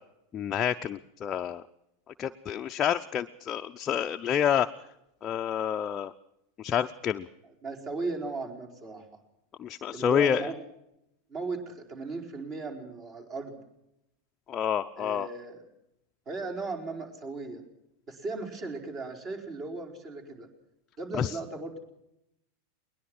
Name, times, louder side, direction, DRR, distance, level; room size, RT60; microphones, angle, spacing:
voice 1, 0.3-1.6 2.2-4.7 5.2-6.1 6.6-7.3 9.6-10.5 14.5-15.3 21.1-21.4, left 9 dB, 30° left, 6 dB, 0.7 m, -28 dB
voice 2, 7.6-9.1 9.9-10.6 11.3-13.6 15.0-15.7 16.3-17.6 18.1-20.5 21.0-21.8, right 3 dB, 35° right, 3 dB, 4.8 m, -37 dB
21.0 x 21.0 x 6.2 m, 0.85 s
figure-of-eight pair, 90°, 0 cm